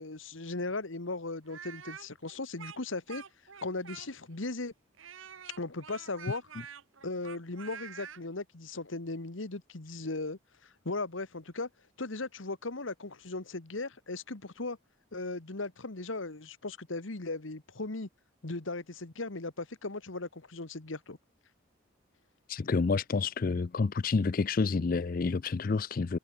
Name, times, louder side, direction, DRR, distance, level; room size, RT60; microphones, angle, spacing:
voice 1, 0.0-3.2 3.6-4.7 5.6-6.5 7.0-11.7 12.0-14.8 15.1-18.1 18.4-21.2, left 2 dB, 75° left, 1.6 m, -37 dB
Speech, 1.5-4.4 5.0-8.2, right 8 dB, 80° right, 1.1 m, -47 dB
voice 2, 22.5-26.2, left 4 dB, 45° left, 0.4 m, -29 dB
head